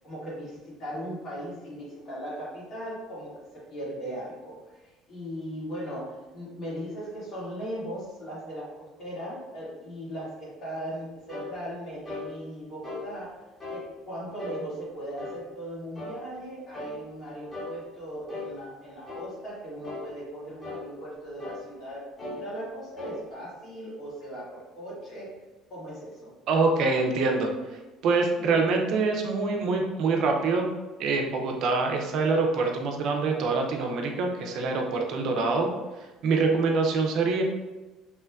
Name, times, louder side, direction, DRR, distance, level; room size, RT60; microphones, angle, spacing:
voice 1, 0.0-13.4 13.7-25.4 25.7-26.3, equal, 50° left, -7 dB, 1.5 m, -38 dB
sound 1, 11.3-11.5 12.1-12.3 12.8-13.1 13.6-13.8 14.4-14.6 15.2-15.4 16.0-16.2 16.7-17.0 17.5-17.8 18.3-18.5 19.1-19.3 19.8-20.1 20.6-20.8 21.4-21.6 22.2-22.4 23.0-23.2, left 3 dB, 20° left, 1.0 m, -37 dB
voice 2, 26.5-27.5 28.0-30.7 31.0-35.7 36.2-37.4, right 4 dB, 65° right, 2 dB, 0.4 m, -25 dB
2.9 x 2.2 x 2.3 m, 1.1 s
supercardioid pair, 100°, 0 cm